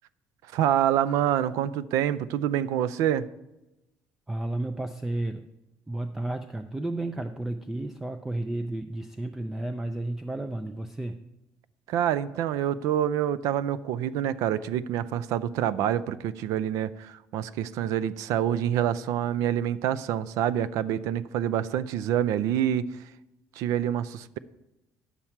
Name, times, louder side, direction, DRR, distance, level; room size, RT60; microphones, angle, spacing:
voice 1, 0.5-3.3 11.9-22.9 23.6-24.4, right 10 dB, 75° right, 17 dB, 0.4 m, -26 dB
voice 2, 4.3-5.5 5.9-11.1, right 2 dB, 5° right, 9 dB, 0.3 m, -32 dB
9.7 x 7.2 x 4.5 m, 0.92 s
cardioid pair, 170°, 6 cm